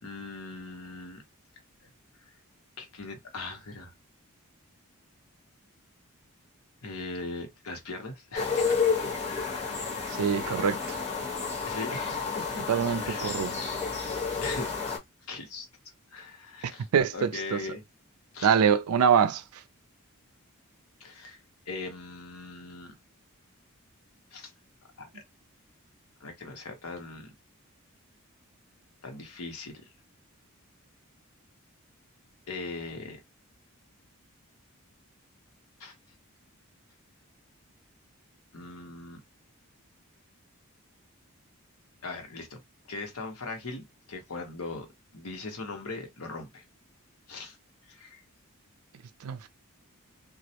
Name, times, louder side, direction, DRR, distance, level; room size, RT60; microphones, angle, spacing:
voice 1, 0.0-1.2 2.8-3.9 6.8-8.7 9.1-9.2 11.6-12.7 13.0-13.5 14.4-14.7 15.3-15.7 16.1-16.9 17.1-17.8 18.3-18.6 21.0-21.4 21.7-22.9 24.3-24.5 25.0-25.2 26.2-27.3 29.0-29.8 32.5-33.2 35.8-35.9 38.5-39.2 42.0-42.6 42.9-44.9 45.1-46.6 47.3-47.6 47.9-48.2, left 3 dB, 80° left, 1.0 m, -39 dB
sound 1, 8.3-15.0, left 5 dB, 30° left, 1.0 m, -31 dB
voice 2, 10.2-11.0 12.7-13.6 16.6-17.6 18.4-19.4 49.2-49.5, right 7 dB, 85° right, 0.4 m, -25 dB
2.4 x 2.0 x 2.8 m
head